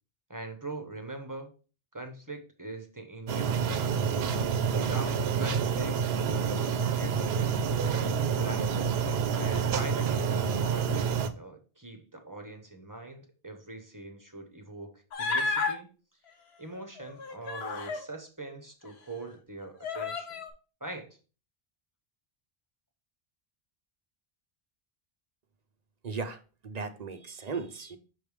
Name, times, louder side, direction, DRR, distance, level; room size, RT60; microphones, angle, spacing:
voice 1, 0.3-1.5 1.9-4.1 4.7-6.0 6.4-8.7 9.3-15.9 16.6-20.4 20.8-21.2, right 2 dB, 20° right, 5 dB, 0.9 m, -42 dB
sound 1, 3.3-11.3, right 6 dB, 80° right, 0.9 m, -28 dB
Human voice, 15.1-15.8 17.0-18.1 18.8-18.9 19.8-20.5, left 4 dB, 80° left, 1.2 m, -32 dB
voice 2, 26.0-28.0, right 4 dB, 50° right, 8 dB, 0.6 m, -37 dB
6.3 x 3.4 x 4.7 m, 0.35 s
omnidirectional pair, 1.0 m